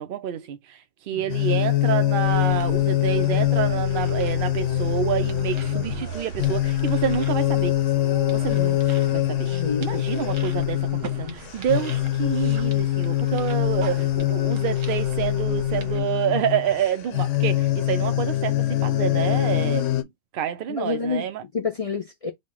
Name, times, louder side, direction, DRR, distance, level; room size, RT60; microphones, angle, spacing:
voice 1, 0.0-7.8 8.3-9.5 9.8-19.9 20.3-21.4, right 10 dB, 60° right, 0.6 m, -28 dB
sound 1, 1.3-20.0, left 14 dB, 75° left, 0.9 m, -24 dB
sound 2, 2.3-16.0, right 5 dB, 75° right, 1.2 m, -38 dB
voice 2, 9.5-10.1 14.0-14.2 20.7-21.2 21.5-22.3, left 5 dB, 50° left, 0.4 m, -29 dB
4.2 x 2.1 x 4.5 m
omnidirectional pair, 1.3 m